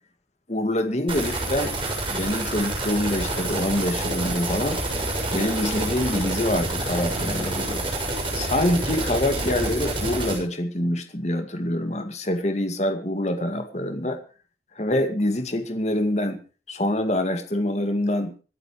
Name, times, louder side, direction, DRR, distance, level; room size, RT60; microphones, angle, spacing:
voice 1, 0.5-1.7 2.1-4.8 5.3-7.9 8.3-14.2 14.8-16.4 16.7-18.3, left 1 dB, 40° left, 6 dB, 2.1 m, -25 dB
sound 1, 1.1-10.4, right 2 dB, 30° right, 6.9 m, -28 dB
26.5 x 11.0 x 3.2 m, 0.36 s
head